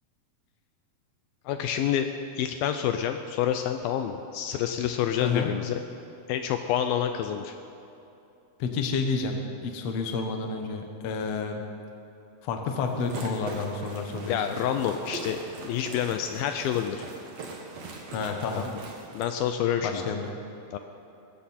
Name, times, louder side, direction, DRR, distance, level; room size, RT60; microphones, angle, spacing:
voice 1, 1.5-2.1 2.4-5.7 6.3-7.6 14.3-17.0 18.6-18.7 19.1-20.1 20.7-20.8, left 9 dB, 80° left, 7 dB, 2.3 m, -28 dB
voice 2, 5.2-5.5 8.6-11.6 12.4-14.3 18.1-18.7 19.8-20.2, left 4 dB, 60° left, 4 dB, 1.8 m, -30 dB
sound 1, 12.8-19.3, right 3 dB, 50° right, 2.4 m, -41 dB
20.5 x 15.5 x 4.3 m, 2.8 s
omnidirectional pair, 4.5 m